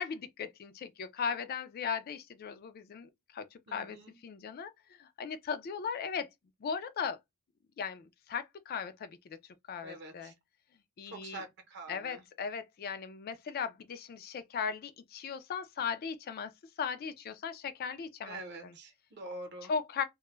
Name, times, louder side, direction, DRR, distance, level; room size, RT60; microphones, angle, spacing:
voice 1, 0.0-4.0 4.2-6.3 6.6-7.2 7.8-9.1 9.7-10.3 11.0-11.4 11.9-16.5 16.8-18.7 19.7-20.0, left 6 dB, 45° left, 0.3 m, -37 dB
voice 2, 3.7-4.2 9.8-10.3 11.1-12.2 18.2-19.7, right 2 dB, 50° right, 0.7 m, -45 dB
2.2 x 2.0 x 3.0 m
head